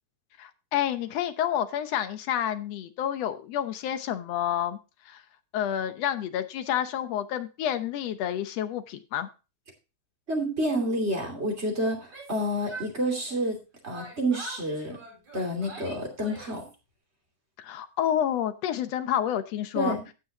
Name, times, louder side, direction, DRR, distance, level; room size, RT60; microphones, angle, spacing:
voice 1, 0.4-4.8 5.1-5.2 5.5-9.3 17.6-20.0, left 10 dB, 70° left, 10 dB, 1.8 m, -29 dB
voice 2, 10.3-13.6 13.8-15.0 15.3-16.6 19.7-20.0, equal, 20° right, 1 dB, 2.9 m, -29 dB
Yell, 11.9-13.6 13.9-16.7, right 2 dB, 65° right, 8.2 m, -44 dB
17.0 x 6.3 x 2.8 m, 0.30 s
omnidirectional pair, 3.4 m